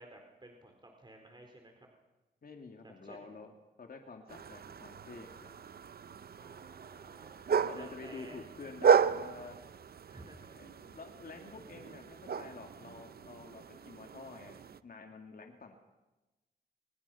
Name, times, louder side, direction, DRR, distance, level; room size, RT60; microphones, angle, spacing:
voice 1, 0.0-1.9 2.8-3.3 6.3-7.4 7.8-8.4 10.1-10.6, right 1 dB, 25° right, 3 dB, 4.2 m, -54 dB
voice 2, 2.4-3.5 3.8-5.6 7.5-9.6 10.6-15.8, left 4 dB, 60° left, 3 dB, 2.5 m, -49 dB
sound 1, 4.3-14.8, right 6 dB, 65° right, 0.7 m, -34 dB
27.0 x 22.0 x 5.8 m, 1.1 s
cardioid pair, 75°, 17 cm